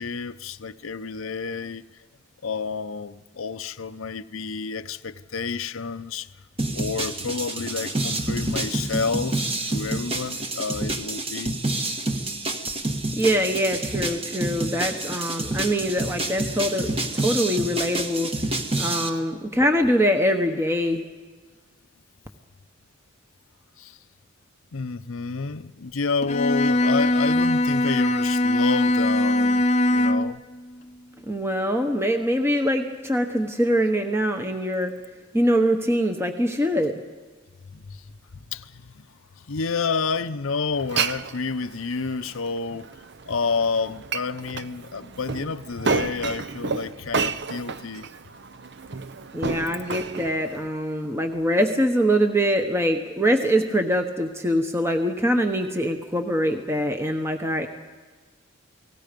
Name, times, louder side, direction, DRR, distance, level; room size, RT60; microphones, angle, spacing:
voice 1, 0.0-1.8 2.4-6.3 6.7-11.6 19.1-19.2 23.8-24.0 24.7-30.4 37.7-39.2 39.5-42.9 43.3-48.0, left 4 dB, 90° left, 0.7 m, -30 dB
sound 1, 6.6-19.1, right 2 dB, 30° right, 1.5 m, -28 dB
voice 2, 13.2-18.3 18.8-21.1 31.3-34.9 35.3-37.0 49.3-57.7, equal, 15° right, 1.1 m, -23 dB
Bowed string instrument, 26.2-30.4, left 1 dB, 35° left, 0.8 m, -21 dB
Glass, 40.7-50.7, right 5 dB, 55° right, 0.7 m, -31 dB
29.5 x 19.5 x 5.2 m
head